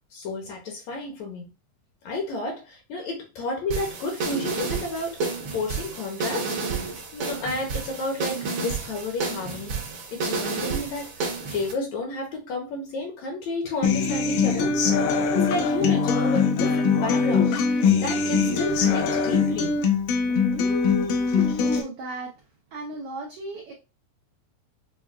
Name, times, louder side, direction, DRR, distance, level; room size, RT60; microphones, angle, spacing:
voice 1, 0.1-1.5 2.0-6.5 7.1-9.8 10.1-11.1 11.5-14.7 15.3-19.7, left 2 dB, 70° left, 2 dB, 1.9 m, -31 dB
sound 1, 3.7-11.7, right 4 dB, 65° right, 1.4 m, -31 dB
Human voice / Acoustic guitar, 13.8-21.8, left 5 dB, 90° left, 2.3 m, -22 dB
voice 2, 21.6-22.3 22.7-23.7, right 2 dB, 90° right, -1 dB, 1.3 m, -35 dB
6.4 x 2.2 x 2.3 m, 0.28 s
omnidirectional pair, 3.5 m